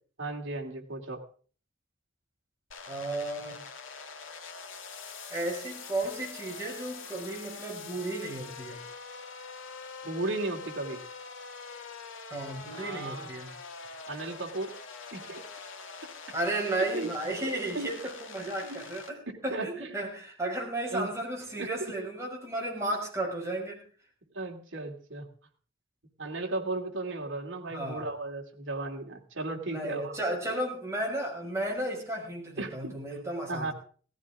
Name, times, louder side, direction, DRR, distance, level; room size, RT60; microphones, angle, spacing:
voice 1, 0.2-1.2 10.0-11.0 12.7-13.3 14.1-14.7 15.1-15.4 16.9-17.1 17.7-17.9 18.6-18.8 19.5-19.9 20.9-21.1 21.6-21.9 24.3-25.3 26.2-30.2 32.6-32.9 33.5-33.7, right 2 dB, 70° right, 1 dB, 2.6 m, -35 dB
sound 1, 2.7-19.1, left 5 dB, 75° left, 1.8 m, -44 dB
voice 2, 2.9-3.6 5.3-8.8 12.3-13.5 16.3-19.2 19.4-23.8 27.7-28.1 29.7-33.7, right 1 dB, 15° right, -2 dB, 5.5 m, -34 dB
17.0 x 15.0 x 3.6 m, 0.42 s
head